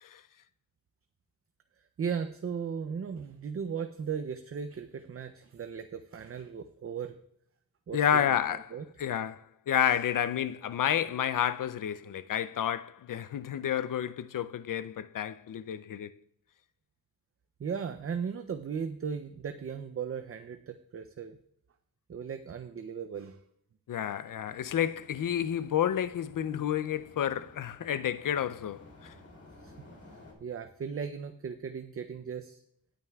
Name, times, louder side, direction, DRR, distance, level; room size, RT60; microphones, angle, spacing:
voice 1, 2.0-7.2 7.9-8.3 8.7-8.8 17.6-21.4 22.1-23.4 29.6-29.7 30.4-32.6, right 6 dB, 40° right, 0.5 m, -37 dB
voice 2, 7.9-8.7 9.0-9.4 9.7-16.1 23.9-29.1, left 9 dB, 60° left, 0.5 m, -30 dB
sound 1, 24.5-30.3, left 2 dB, 40° left, 2.9 m, -55 dB
18.0 x 8.9 x 2.3 m
wide cardioid pair, 180°, 37 cm